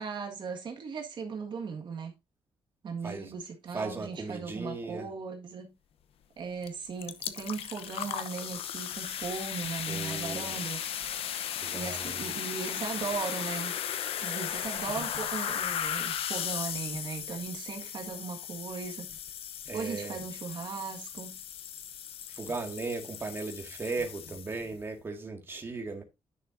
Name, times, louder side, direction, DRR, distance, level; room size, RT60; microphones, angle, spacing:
voice 1, 0.0-2.1 2.8-5.7 6.4-10.8 11.7-13.7 14.2-19.1 19.7-21.4, right 5 dB, 50° right, 1.7 m, -37 dB
voice 2, 3.7-5.1 9.8-10.6 11.6-12.3 19.7-20.3 22.3-26.0, right 3 dB, 25° right, 2.0 m, -37 dB
sound 1, 6.6-6.7 7.0-24.7, left 9 dB, 80° left, 0.8 m, -36 dB
10.5 x 6.6 x 2.6 m
wide cardioid pair, 150°, 10 cm